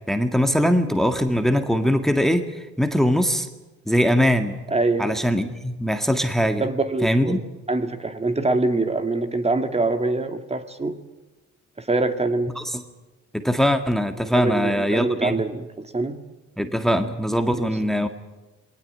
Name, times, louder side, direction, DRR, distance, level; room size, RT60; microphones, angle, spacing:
voice 1, 0.1-2.4 2.8-3.5 3.9-4.6 5.0-6.6 7.0-7.4 12.6-12.8 13.3-15.4 16.6-18.1, equal, ahead, 7 dB, 1.9 m, -21 dB
voice 2, 4.7-5.1 6.6-7.4 7.7-11.0 11.8-12.5 14.3-16.2 17.5-17.7, right 2 dB, 20° right, 7 dB, 2.1 m, -24 dB
21.0 x 18.5 x 9.3 m, 1.1 s
cardioid pair, 90°, 30 cm